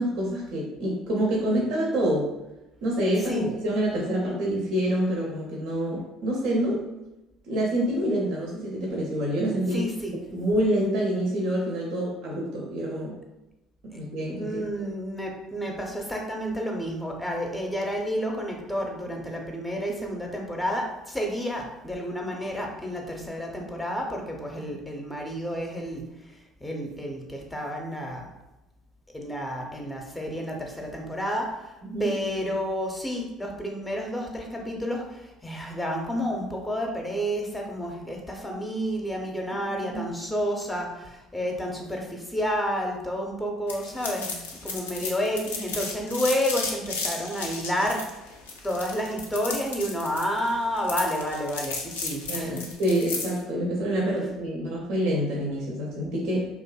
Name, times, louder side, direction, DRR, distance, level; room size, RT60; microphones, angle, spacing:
voice 1, 0.0-2.3 2.8-6.8 7.5-9.8 10.3-13.2 13.9-14.6 24.7-24.8 31.8-32.1 39.7-40.1 45.0-45.1 52.3-56.5, right 1 dB, 65° right, -2 dB, 0.5 m, -27 dB
voice 2, 9.7-10.1 14.4-28.3 29.1-31.7 32.0-44.4 44.6-48.3 48.6-52.6, equal, 15° left, 1 dB, 0.5 m, -30 dB
sound 1, 43.7-53.4, left 4 dB, 85° left, 0.3 m, -34 dB
2.6 x 2.4 x 2.2 m, 0.98 s
hypercardioid pair, 60°, 0 cm